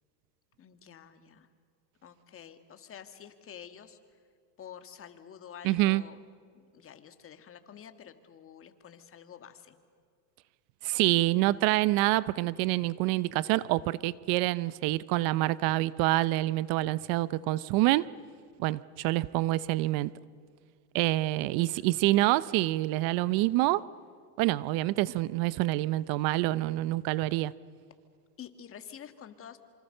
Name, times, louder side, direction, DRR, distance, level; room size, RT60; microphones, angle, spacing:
voice 1, 0.6-1.5 2.0-4.0 4.6-6.2 6.5-9.8 21.4-21.8 28.4-29.6, left 8 dB, 25° left, 8 dB, 2.0 m, -49 dB
voice 2, 5.6-6.0 10.8-18.1 18.6-20.1 20.9-23.8 24.4-27.5, right 18 dB, 45° right, 19 dB, 0.7 m, -27 dB
26.5 x 25.5 x 6.7 m, 2.1 s
supercardioid pair, 115°, 47 cm